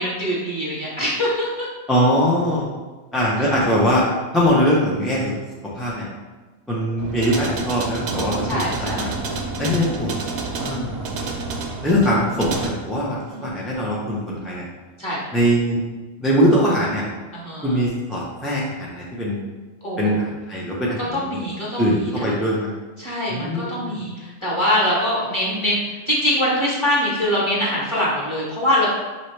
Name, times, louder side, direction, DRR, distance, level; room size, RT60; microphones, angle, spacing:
voice 1, 0.0-1.7 8.5-9.1 13.3-13.4 15.0-15.2 17.4-17.8 19.8-20.1 21.1-21.8 22.2-22.3 23.0-24.1 24.4-25.8 26.1-28.9, left 1 dB, 25° left, -6 dB, 1.3 m, -23 dB
voice 2, 1.9-2.7 3.1-4.0 4.3-5.3 5.8-6.1 6.7-9.1 9.6-10.2 10.6-11.1 11.8-14.7 15.3-15.8 16.2-17.1 17.6-19.4 20.0-21.4 21.8-22.7 23.3-24.0, equal, ahead, -5 dB, 0.3 m, -21 dB
sound 1, 7.0-12.7, right 3 dB, 60° right, 0.8 m, -29 dB
5.7 x 2.8 x 3.2 m, 1.3 s
omnidirectional pair, 1.3 m